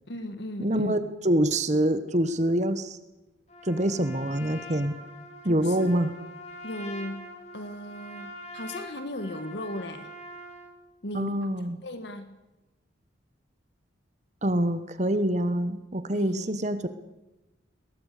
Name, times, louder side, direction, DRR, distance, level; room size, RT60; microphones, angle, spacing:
voice 1, 0.1-1.1 5.4-5.9 6.6-7.3 7.5-10.1 11.0-11.3 11.8-12.4 16.1-16.5, left 1 dB, 65° left, 9 dB, 1.6 m, -36 dB
voice 2, 0.6-3.0 3.6-4.9 5.4-6.1 11.1-11.8 14.4-16.9, right 1 dB, 35° right, 12 dB, 1.2 m, -25 dB
Trumpet, 3.5-10.7, left 1 dB, 35° left, 3.8 m, -44 dB
21.5 x 18.0 x 8.4 m, 1.0 s
head